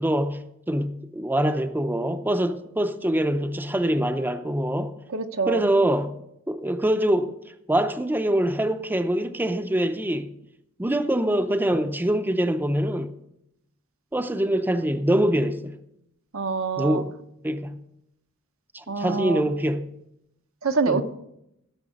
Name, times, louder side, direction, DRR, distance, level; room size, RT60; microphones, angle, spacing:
voice 1, 0.0-5.0 5.5-6.2 6.5-7.3 7.7-10.3 10.8-13.1 14.1-15.8 16.8-17.1 17.4-17.8 18.7-19.9 20.9-21.0, right 1 dB, 10° right, 0.5 m, -24 dB
voice 2, 5.1-5.7 16.3-17.0 18.9-19.4 20.6-21.0, right 4 dB, 80° right, 0.9 m, -25 dB
16.0 x 6.5 x 6.4 m
head